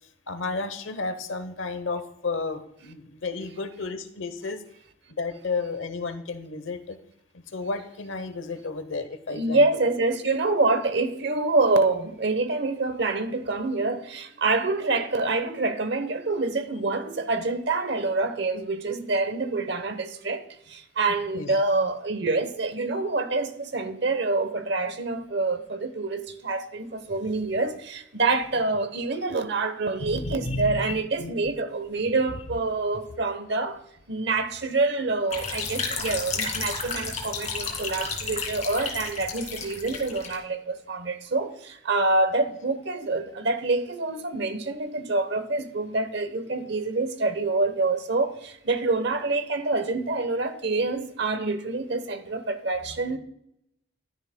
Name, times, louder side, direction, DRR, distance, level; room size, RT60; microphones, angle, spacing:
voice 1, 0.3-4.6 5.2-7.0 7.3-9.9 21.3-21.6 30.0-30.9 31.2-31.3, left 3 dB, 75° left, 0.9 m, -32 dB
voice 2, 9.3-33.8 34.1-53.2, right 3 dB, 55° right, 0.9 m, -26 dB
sound 1, 35.3-40.4, left 4 dB, 35° left, 2.3 m, -32 dB
12.0 x 10.5 x 2.2 m
head